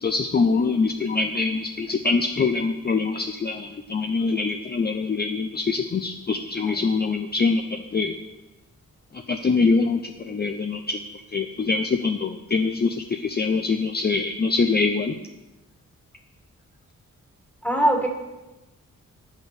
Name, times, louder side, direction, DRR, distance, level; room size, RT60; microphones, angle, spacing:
voice 1, 0.0-8.2 9.1-11.0 11.3-15.2, left 4 dB, 30° left, 6 dB, 0.6 m, -24 dB
voice 2, 17.6-18.1, right 1 dB, 5° left, 3 dB, 1.8 m, -21 dB
10.0 x 8.2 x 6.5 m, 1.1 s
wide cardioid pair, 125°, 31 cm